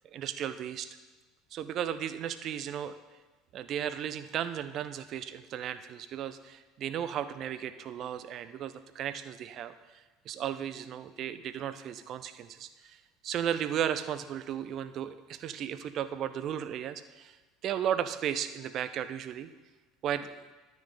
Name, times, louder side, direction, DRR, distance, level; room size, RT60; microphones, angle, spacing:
voice 1, 0.1-0.9 1.5-3.0 3.5-9.7 10.3-13.0 13.2-17.4 17.6-19.5 20.0-20.5, right 9 dB, 45° right, 12 dB, 0.6 m, -35 dB
12.0 x 6.4 x 5.0 m, 1.2 s
figure-of-eight pair, 65°, 0 cm